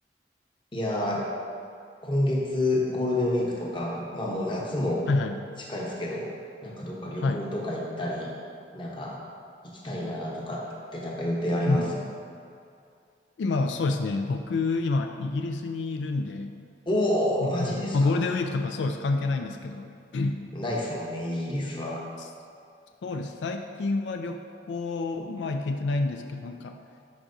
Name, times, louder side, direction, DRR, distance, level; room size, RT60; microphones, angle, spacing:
voice 1, 0.7-1.3 2.0-5.1 5.7-6.3 6.6-8.3 8.7-9.2 9.6-10.7 10.9-12.0 16.9-18.1 20.5-22.1, left 1 dB, 30° left, -3 dB, 0.9 m, -28 dB
voice 2, 5.1-5.4 7.2-7.4 11.7-12.0 13.4-16.5 17.6-20.4 22.2-22.3 23.0-24.4 24.7-26.8, left 3 dB, 90° left, 5 dB, 0.4 m, -28 dB
10.0 x 4.7 x 2.7 m, 2.4 s
head